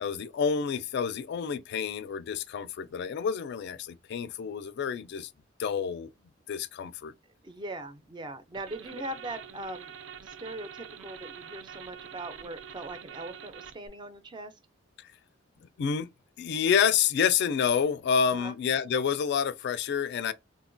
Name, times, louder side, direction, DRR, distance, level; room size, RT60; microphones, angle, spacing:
voice 1, 0.0-5.3 5.6-6.1 6.5-7.1 15.0-15.1 15.8-16.1 16.4-20.3, left 7 dB, 60° left, 0.3 m, -28 dB
voice 2, 7.4-10.0 10.2-14.5 18.3-18.5, right 2 dB, 25° right, 0.4 m, -40 dB
sound 1, 8.5-13.9, right 7 dB, 85° right, 0.4 m, -45 dB
3.7 x 2.1 x 2.5 m
head